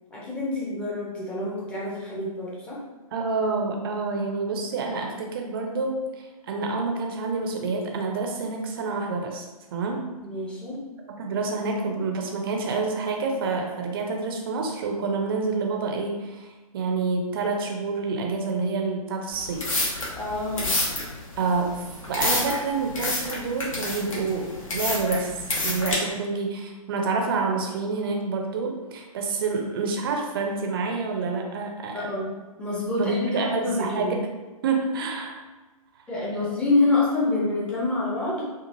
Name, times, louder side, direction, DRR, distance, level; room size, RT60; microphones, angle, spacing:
voice 1, 0.1-2.8 10.2-10.8 20.1-20.8 31.9-34.1 36.1-38.4, left 2 dB, 5° left, -6 dB, 0.6 m, -27 dB
voice 2, 3.1-10.0 11.1-16.5 16.7-19.7 21.4-32.1 33.0-34.1 34.6-35.4, right 4 dB, 40° right, 2 dB, 0.5 m, -28 dB
sound 1, 19.3-25.9, left 2 dB, 60° left, 1.0 m, -28 dB
2.9 x 2.3 x 2.6 m, 1.2 s
figure-of-eight pair, 125°, 19 cm